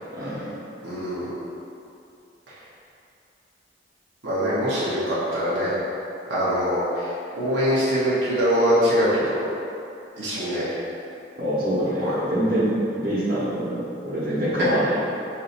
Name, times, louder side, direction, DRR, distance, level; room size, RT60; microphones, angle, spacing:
voice 1, 0.1-0.5 11.4-14.8, right 1 dB, 50° right, -10 dB, 1.1 m, -25 dB
voice 2, 0.8-1.3 2.5-2.6 4.2-5.8 6.3-9.5 10.2-10.7 12.0-12.1, equal, 85° right, -10 dB, 1.0 m, -23 dB
5.5 x 2.7 x 2.6 m, 2.6 s
head